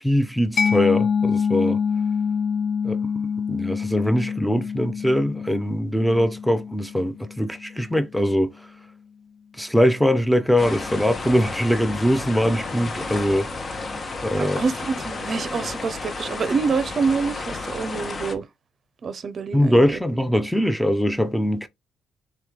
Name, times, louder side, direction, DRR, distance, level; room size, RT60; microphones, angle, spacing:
voice 1, 0.0-1.8 2.8-3.1 3.5-8.5 9.6-13.5 14.2-14.6 19.5-21.7, equal, ahead, 0.6 m, -22 dB
Mallet percussion, 0.6-8.0, left 6 dB, 55° left, 0.3 m, -26 dB
sound 1, 10.6-18.4, left 3 dB, 40° left, 0.9 m, -32 dB
voice 2, 14.3-18.5 19.0-20.0, right 5 dB, 45° right, 0.6 m, -26 dB
4.0 x 3.1 x 3.6 m
cardioid pair, 90°, 0 cm